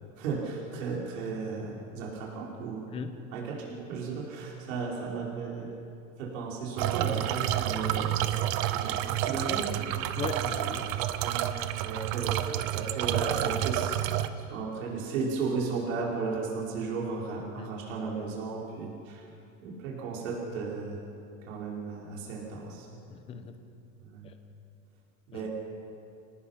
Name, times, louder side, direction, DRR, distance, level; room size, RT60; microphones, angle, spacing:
voice 1, 0.2-2.9 3.3-5.7 6.2-8.2 8.7-9.9 11.2-14.0 14.4-19.2 19.6-21.0 21.5-22.9 24.1-24.3 25.3-25.5, right 4 dB, 65° right, -4 dB, 4.9 m, -35 dB
sound 1, 6.8-14.3, right 12 dB, 25° right, 0.5 m, -29 dB
voice 2, 10.2-11.0 17.6-17.7 23.1-23.6 24.2-24.3 25.3-25.5, left 6 dB, 15° left, 8 dB, 0.8 m, -38 dB
26.0 x 19.0 x 5.8 m, 2.7 s
supercardioid pair, 170°, 41 cm